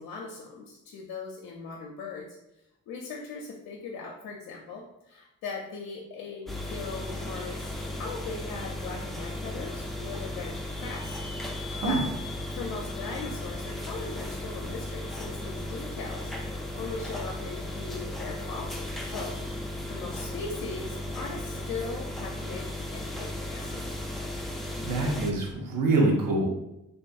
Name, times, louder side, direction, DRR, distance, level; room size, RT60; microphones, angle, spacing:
voice 1, 0.0-2.4 2.9-11.2 11.8-12.0 12.6-16.3 16.7-22.7 22.9-24.0, left 4 dB, 75° left, -1 dB, 0.5 m, -39 dB
sound 1, 6.5-25.3, left 1 dB, ahead, 0.4 m, -35 dB
voice 2, 11.7-12.0 24.8-26.5, right 2 dB, 70° right, 0 dB, 0.7 m, -25 dB
2.5 x 2.4 x 2.3 m, 0.86 s
supercardioid pair, 55°, 34 cm